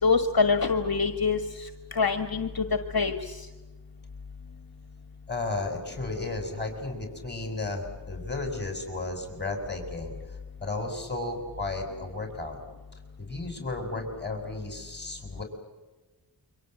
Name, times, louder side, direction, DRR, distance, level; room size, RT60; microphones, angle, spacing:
voice 1, 0.0-2.6 2.9-3.3, left 4 dB, 60° left, 8 dB, 1.6 m, -25 dB
voice 2, 5.3-10.1 10.6-12.6 13.2-15.4, left 2 dB, 25° left, 4 dB, 6.4 m, -34 dB
29.0 x 24.0 x 7.8 m, 1.2 s
wide cardioid pair, 50°, 41 cm